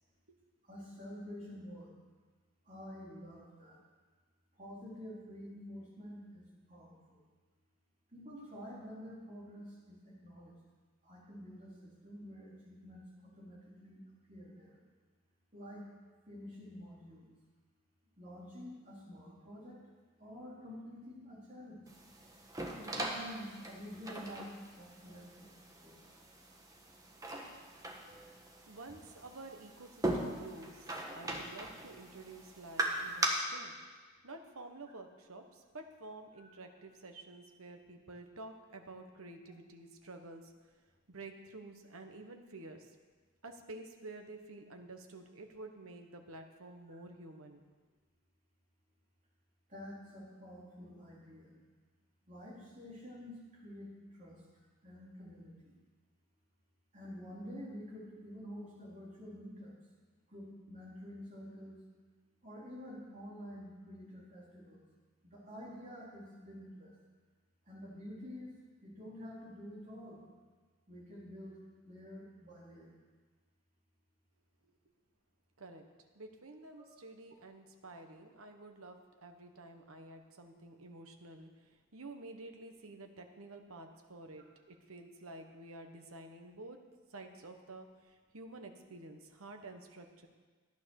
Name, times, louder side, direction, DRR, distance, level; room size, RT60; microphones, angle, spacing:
voice 1, 0.6-1.9 2.7-3.8 4.6-7.2 8.1-10.5 11.0-14.0 14.3-14.8 15.5-15.9 16.3-17.3 18.2-19.8 20.2-21.8 22.8-25.5 25.8-26.0 36.4-36.5 49.7-51.5 52.3-54.4 54.8-55.7 56.9-59.7 60.3-61.8 62.4-64.8 65.2-66.9 67.7-68.5 68.8-70.2 70.9-72.9 76.8-76.9, equal, 35° right, -6 dB, 4.1 m, -49 dB
sound 1, 21.9-33.3, right 1 dB, 15° right, 1.4 m, -40 dB
voice 2, 28.7-33.7 34.2-40.5 41.1-42.9 43.4-47.6 75.6-75.8 76.1-86.8 87.1-90.3, right 2 dB, 75° right, 5 dB, 1.3 m, -50 dB
14.0 x 9.7 x 6.6 m, 1.4 s
head